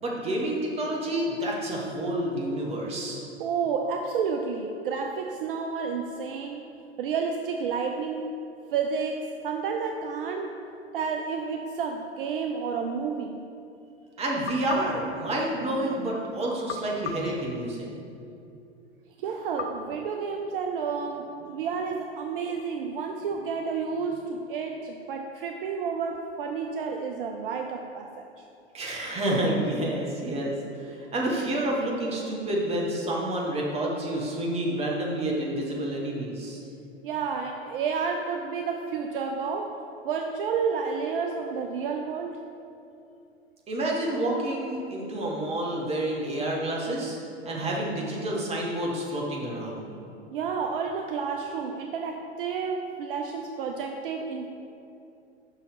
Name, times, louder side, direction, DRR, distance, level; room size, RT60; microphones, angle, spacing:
voice 1, 0.0-3.2 14.2-17.9 28.7-36.6 43.7-47.2 47.4-49.9, right 1 dB, 20° right, -2 dB, 1.2 m, -29 dB
voice 2, 3.4-6.6 7.0-10.6 10.9-13.4 19.2-28.3 37.0-39.8 40.0-42.4 50.3-54.5, right 5 dB, 55° right, 3 dB, 0.5 m, -30 dB
sound 1, 14.5-16.1 16.7-18.3 19.6-20.9, left 4 dB, 80° left, 0.5 m, -40 dB
5.8 x 4.0 x 5.6 m, 2.6 s
figure-of-eight pair, 95°, 33 cm